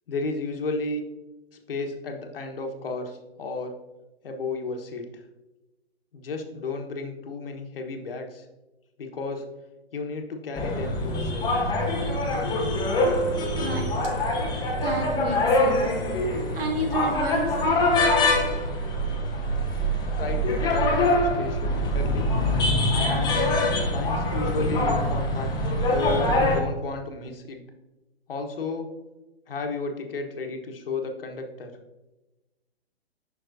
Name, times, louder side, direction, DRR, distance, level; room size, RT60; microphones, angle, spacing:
voice 1, 0.1-1.0 1.7-3.7 4.2-5.2 6.1-8.5 9.0-9.4 9.9-11.5 20.2-22.3 23.9-27.6 28.3-28.9 29.5-31.7, left 3 dB, 60° left, 4 dB, 1.2 m, -33 dB
sound 1, 10.6-26.6, left 1 dB, 15° left, 0.9 m, -24 dB
voice 2, 13.3-13.9 14.8-15.9 16.5-17.5, right 2 dB, 65° right, 1 dB, 2.1 m, -30 dB
7.6 x 5.9 x 2.6 m, 1.0 s
figure-of-eight pair, 130°, 32 cm